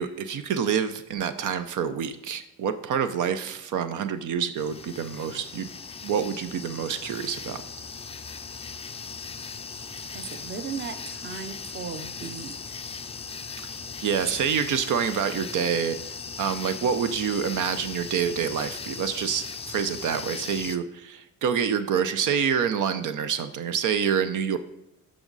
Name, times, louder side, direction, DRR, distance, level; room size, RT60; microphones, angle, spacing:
voice 1, 0.0-5.7 6.0-7.6 14.0-16.0 16.4-24.6, right 7 dB, 75° right, 10 dB, 0.7 m, -27 dB
sound 1, 4.6-20.8, left 5 dB, 20° left, 0.4 m, -38 dB
voice 2, 10.1-12.8, right 6 dB, 35° right, 10 dB, 0.8 m, -37 dB
13.5 x 5.1 x 4.0 m, 0.85 s
cardioid pair, 145°, 32 cm